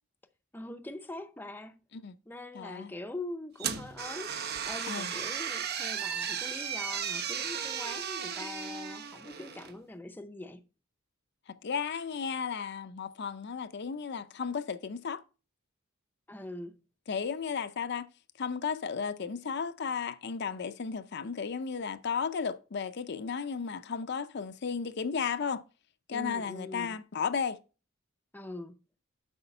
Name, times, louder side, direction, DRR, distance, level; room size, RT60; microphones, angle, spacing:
voice 1, 0.5-1.8 2.3-10.6 16.3-16.7 26.1-27.0 28.3-28.8, left 2 dB, 10° left, 0.6 m, -43 dB
voice 2, 2.5-2.9 4.9-5.1 11.5-15.2 17.1-18.1 18.4-25.6 26.1-27.6, left 6 dB, 55° left, 0.5 m, -34 dB
sound 1, 3.6-9.8, right 7 dB, 50° right, 0.8 m, -35 dB
8.0 x 5.0 x 5.3 m
head